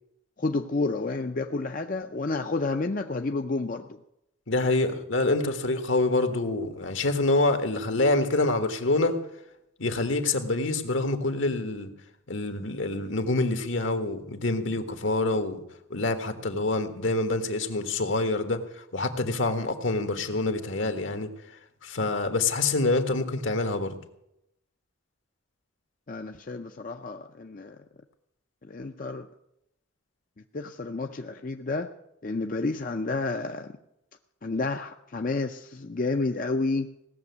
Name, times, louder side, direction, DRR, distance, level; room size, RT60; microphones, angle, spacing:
voice 1, 0.4-4.0 26.1-27.8 28.6-29.3 30.5-31.9 32.2-33.8 34.4-36.9, left 3 dB, 40° left, 5 dB, 0.6 m, -30 dB
voice 2, 4.5-9.2 9.8-11.9 12.3-15.6 15.9-18.6 18.9-21.3 21.8-23.9, left 2 dB, 75° left, 7 dB, 1.7 m, -26 dB
17.5 x 7.0 x 9.5 m, 0.81 s
head